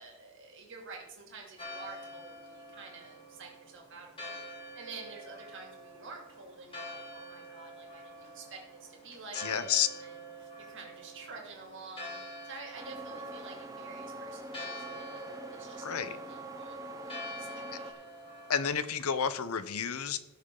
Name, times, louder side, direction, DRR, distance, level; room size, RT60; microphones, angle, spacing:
voice 1, 0.0-4.4 4.7-12.2 12.4-18.1, right 4 dB, 60° right, 0 dB, 2.9 m, -49 dB
Church bell, 1.6-18.7, equal, 25° left, 2.4 m, -47 dB
voice 2, 9.3-9.9 15.8-16.2 18.5-20.2, left 8 dB, 90° left, 13 dB, 0.8 m, -30 dB
sound 1, 12.7-17.9, right 2 dB, 15° right, 1.0 m, -44 dB
18.0 x 6.7 x 3.9 m, 0.99 s
head